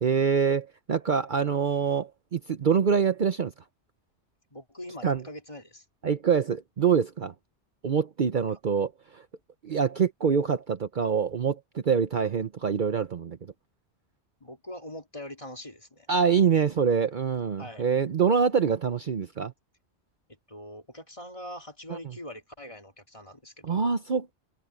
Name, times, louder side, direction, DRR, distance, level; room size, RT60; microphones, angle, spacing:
voice 1, 0.0-3.5 5.0-5.2 6.0-7.3 7.8-9.2 9.6-13.4 16.1-19.5 21.9-22.0 23.6-24.3, right 6 dB, 50° right, 0.9 m, -25 dB
voice 2, 4.5-5.8 14.4-16.1 17.6-17.8 20.5-23.9, left 1 dB, 30° left, 3.1 m, -42 dB
omnidirectional pair, 1.1 m